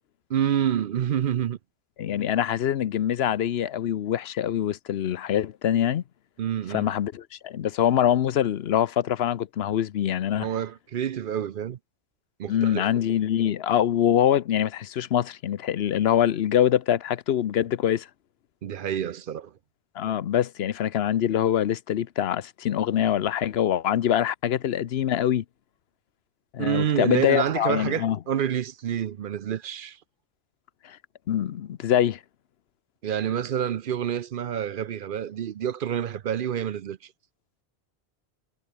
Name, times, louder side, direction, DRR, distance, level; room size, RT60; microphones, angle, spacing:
voice 1, 0.3-1.6 6.4-6.9 10.4-11.8 12.4-12.9 18.6-19.5 26.6-30.0 33.0-37.1, right 9 dB, 60° right, 0.7 m, -28 dB
voice 2, 2.0-6.0 6.7-10.5 12.5-18.1 20.0-25.4 26.5-28.2 30.8-31.0 31.3-32.2, left 10 dB, 75° left, 1.0 m, -24 dB
omnidirectional pair, 1.1 m